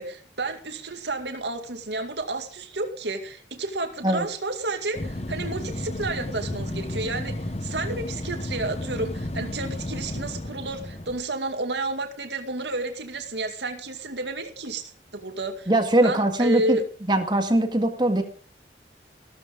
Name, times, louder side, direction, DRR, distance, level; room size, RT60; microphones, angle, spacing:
voice 1, 0.0-15.7 16.0-16.8, right 2 dB, 80° right, 6 dB, 2.3 m, -31 dB
sound 1, 4.9-11.2, left 1 dB, 35° left, 1.0 m, -32 dB
voice 2, 15.7-16.8 17.1-18.2, right 1 dB, 25° right, 6 dB, 1.9 m, -21 dB
16.0 x 14.0 x 3.8 m, 0.42 s
head